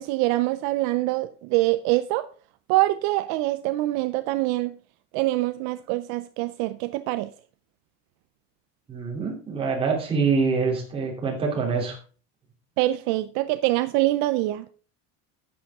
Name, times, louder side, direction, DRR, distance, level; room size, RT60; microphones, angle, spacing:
voice 1, 0.0-2.3 2.7-4.8 5.1-7.3 12.8-14.6, right 18 dB, 60° right, 0.6 m, -24 dB
voice 2, 8.9-12.0, right 5 dB, 15° right, 3.1 m, -25 dB
11.5 x 8.6 x 3.6 m
cardioid pair, 170°, 32 cm